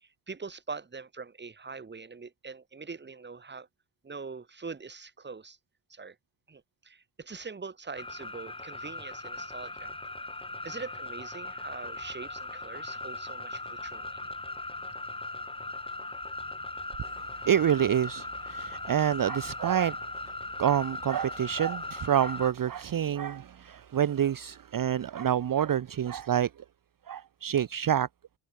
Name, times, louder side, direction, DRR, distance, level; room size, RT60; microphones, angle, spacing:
voice 1, 0.0-3.7 4.0-5.6 5.9-6.1 6.5-9.9 10.6-14.2, right 4 dB, 20° right, 1.5 m, -43 dB
sound 1, 8.0-22.5, left 2 dB, 10° left, 1.1 m, -39 dB
voice 2, 17.4-20.0 20.6-26.5 27.1-28.1, right 10 dB, 40° right, 0.9 m, -27 dB
cardioid pair, 80°, 49 cm